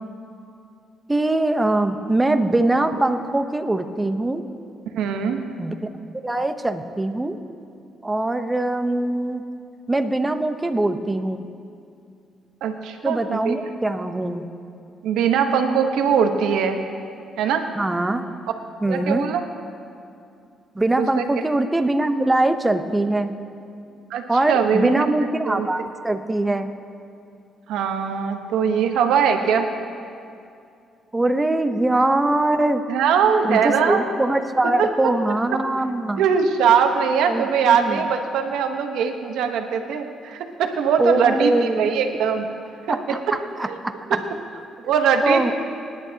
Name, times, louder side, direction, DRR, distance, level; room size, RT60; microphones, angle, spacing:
voice 1, 1.1-4.4 5.6-5.7 6.2-7.4 8.0-9.4 9.9-11.5 13.0-14.4 17.8-18.2 18.8-19.3 20.7-23.3 24.3-26.7 31.1-32.8 33.4-36.2 37.3-38.0 41.0-42.0 42.9-44.2 45.2-45.5, right 2 dB, 15° right, 8 dB, 0.9 m, -22 dB
voice 2, 4.9-5.4 12.6-13.6 15.0-16.8 17.4-17.6 18.9-19.4 20.9-21.2 24.1-25.1 25.5-25.7 27.7-29.7 32.9-34.0 34.8-35.1 36.2-42.5 42.9-43.0 43.3-43.4 43.6-43.8 44.9-45.5, right 7 dB, 85° right, 5 dB, 1.1 m, -21 dB
24.5 x 11.0 x 2.9 m, 2.5 s
cardioid pair, 90°, 0 cm